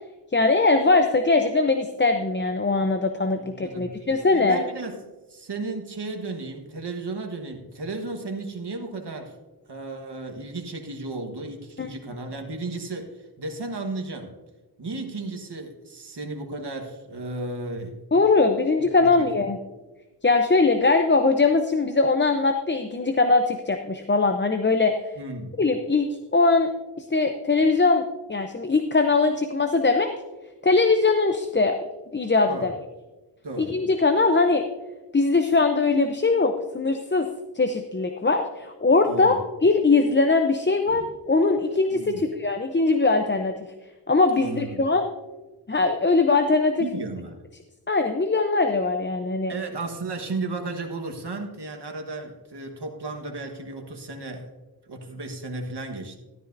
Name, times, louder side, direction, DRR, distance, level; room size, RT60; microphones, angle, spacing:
voice 1, 0.3-4.6 11.8-11.9 18.1-19.6 20.2-25.0 25.6-26.7 27.0-30.1 30.6-31.8 32.1-32.7 33.6-34.6 35.1-37.3 37.5-39.4 39.6-43.5 44.1-45.1 45.7-46.9 47.9-49.5, left 3 dB, 25° left, 6 dB, 0.6 m, -21 dB
voice 2, 3.4-4.0 4.3-5.0 5.3-9.3 9.7-14.4 14.8-18.0 19.0-19.5 25.2-25.6 32.5-32.7 33.4-33.8 39.1-39.4 40.9-41.0 41.9-42.3 44.4-44.9 46.8-47.4 49.5-54.5 54.9-56.2, right 2 dB, 75° right, 4 dB, 1.4 m, -34 dB
13.0 x 12.5 x 2.6 m, 1.1 s
wide cardioid pair, 65°, 41 cm